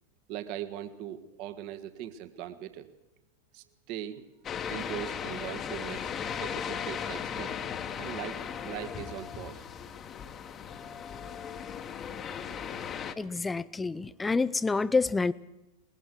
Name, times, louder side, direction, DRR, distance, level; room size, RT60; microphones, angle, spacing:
voice 1, 0.3-2.9 3.5-4.2 4.7-6.1 6.4-7.6 8.0-9.6, right 11 dB, 45° right, 10 dB, 1.5 m, -40 dB
sound 1, 4.4-13.1, left 8 dB, 25° left, 1.3 m, -37 dB
voice 2, 13.2-15.3, left 3 dB, 10° left, 18 dB, 0.6 m, -28 dB
22.0 x 20.0 x 6.1 m, 0.98 s
figure-of-eight pair, 90°, 0 cm